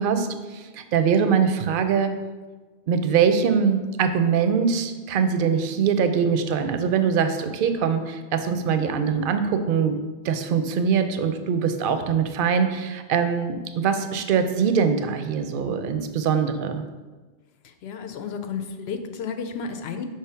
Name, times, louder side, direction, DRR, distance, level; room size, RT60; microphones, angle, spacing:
voice 1, 0.0-2.2 2.9-10.0 10.2-16.8, right 6 dB, 65° right, 9 dB, 0.7 m, -23 dB
voice 2, 17.6-20.1, left 6 dB, 80° left, 6 dB, 0.8 m, -32 dB
4.9 x 3.5 x 5.5 m, 1.3 s
omnidirectional pair, 1.0 m